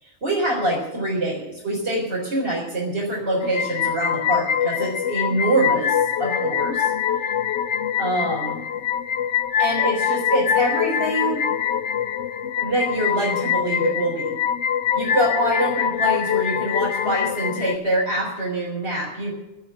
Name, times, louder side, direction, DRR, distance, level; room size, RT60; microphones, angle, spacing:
voice 1, 0.0-6.9 8.0-8.6 9.6-11.4 12.6-14.4 14.9-19.3, right 1 dB, 75° right, -5 dB, 4.4 m, -25 dB
sound 1, 3.4-17.8, left 9 dB, 85° left, 1.0 m, -24 dB
17.0 x 7.2 x 8.7 m, 0.98 s
omnidirectional pair, 1.1 m